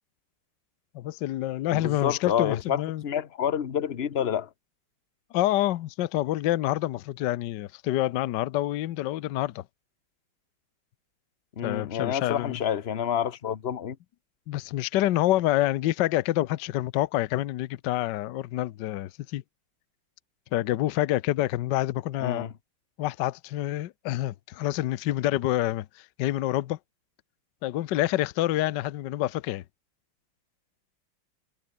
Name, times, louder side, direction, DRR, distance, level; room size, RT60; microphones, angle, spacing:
voice 1, 0.9-3.0 5.3-9.6 11.6-12.6 14.5-19.4 20.5-22.5 23.0-25.9 26.2-26.8 27.6-29.6, left 14 dB, 65° left, 1.2 m, -27 dB
voice 2, 1.7-4.5 11.6-14.0 22.2-22.5, left 9 dB, 45° left, 0.9 m, -28 dB
omnidirectional pair, 2.4 m